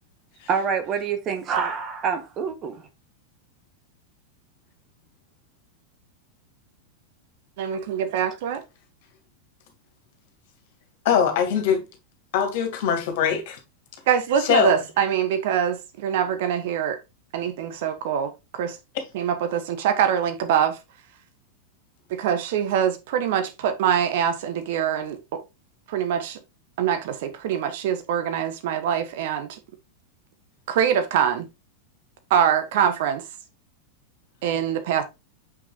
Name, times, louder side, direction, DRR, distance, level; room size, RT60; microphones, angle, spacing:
voice 1, 0.5-2.9, right 6 dB, 30° right, 1.5 m, -26 dB
voice 2, 7.6-8.6 14.1-17.0 17.3-18.8 19.1-20.8 22.1-25.4 25.9-26.4 26.8-29.6 30.7-31.5 32.3-33.2 34.4-35.0, right 8 dB, 50° right, 1.1 m, -24 dB
voice 3, 11.0-11.8 12.3-13.6 14.4-14.7 18.9-19.0, left 8 dB, 50° left, 2.2 m, -22 dB
6.5 x 6.0 x 2.5 m
figure-of-eight pair, 90°, 0 cm